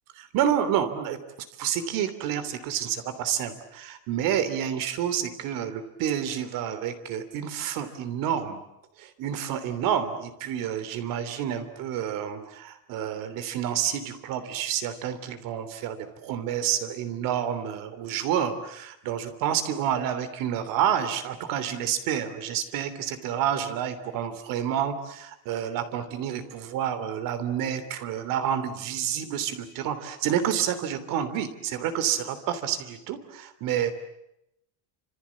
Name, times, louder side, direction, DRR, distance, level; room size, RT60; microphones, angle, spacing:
voice 1, 0.2-1.2 1.6-8.6 9.0-33.9, right 9 dB, 45° right, 11 dB, 3.2 m, -29 dB
29.0 x 27.0 x 7.3 m, 0.83 s
cardioid pair, 175°, 47 cm